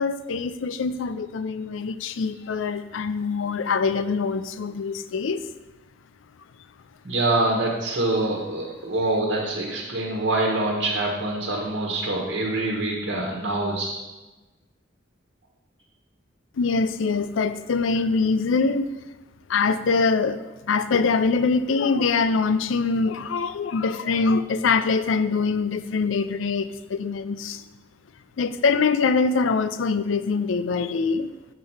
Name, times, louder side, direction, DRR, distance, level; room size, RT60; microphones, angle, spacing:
voice 1, 0.0-5.4 16.6-18.9 19.5-27.6 28.4-31.3, left 4 dB, 80° left, 12 dB, 0.4 m, -24 dB
voice 2, 7.0-14.0, right 2 dB, 70° right, -2 dB, 1.2 m, -25 dB
6.7 x 4.6 x 5.5 m, 1.1 s
head